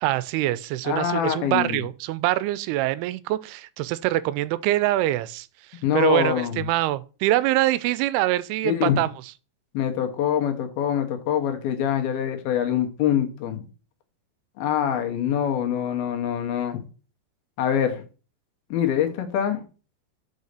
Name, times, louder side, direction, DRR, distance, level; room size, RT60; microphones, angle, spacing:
voice 1, 0.0-5.5 5.9-9.1, right 15 dB, 85° right, 2.6 m, -24 dB
voice 2, 0.8-1.8 5.8-6.6 8.6-9.0 9.7-13.7 14.6-16.8 17.6-18.0 18.7-19.6, left 9 dB, 75° left, 2.9 m, -24 dB
6.3 x 5.5 x 6.7 m
omnidirectional pair, 4.5 m